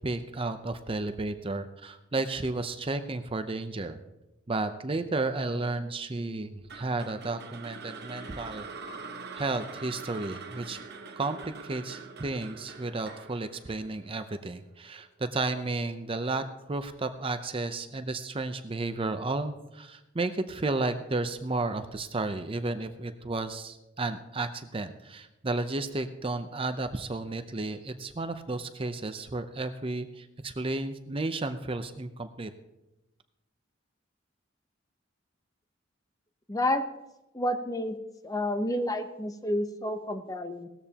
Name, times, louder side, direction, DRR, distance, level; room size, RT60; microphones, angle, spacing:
voice 1, 0.0-4.0 4.5-8.7 9.4-10.8 11.2-16.4 16.7-32.5, right 2 dB, 30° right, 9 dB, 0.6 m, -33 dB
sound 1, 6.7-14.9, right 4 dB, 55° right, 1.2 m, -44 dB
voice 2, 36.5-36.8 37.3-38.0 38.2-40.7, left 1 dB, 20° left, 8 dB, 0.8 m, -30 dB
18.0 x 14.0 x 2.9 m, 0.96 s
head